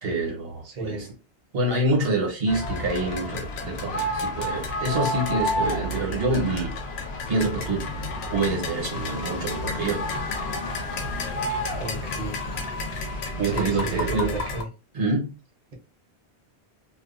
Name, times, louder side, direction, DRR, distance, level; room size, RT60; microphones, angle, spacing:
voice 1, 0.0-1.1 1.5-6.7 7.3-7.9 8.3-10.0 13.3-14.3 14.9-15.3, right 2 dB, 65° right, -1 dB, 1.2 m, -26 dB
voice 2, 0.6-1.1 11.8-12.4 13.5-14.7, right 2 dB, 40° right, 1 dB, 0.8 m, -33 dB
sound 1, 2.5-14.6, left 1 dB, 75° left, 0.9 m, -30 dB
2.5 x 2.3 x 2.4 m, 0.31 s
omnidirectional pair, 1.1 m